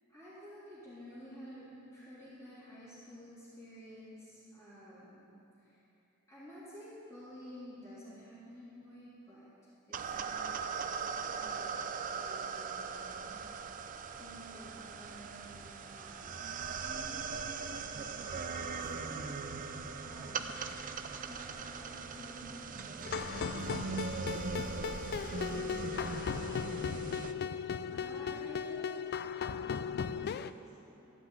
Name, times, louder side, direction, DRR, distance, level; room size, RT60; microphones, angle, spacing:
voice 1, 0.1-5.8 6.3-10.6 11.3-11.7 12.1-13.4 14.2-18.3 18.7-19.3 20.0-20.6 21.2-25.8 26.1-26.7 27.9-29.0 29.6-31.1, equal, 15° left, -13 dB, 3.3 m, -52 dB
sound 1, 9.9-27.3, right 5 dB, 40° right, 0.5 m, -40 dB
sound 2, 23.0-30.5, left 6 dB, 50° left, 0.3 m, -37 dB
14.0 x 5.8 x 9.2 m, 2.9 s
head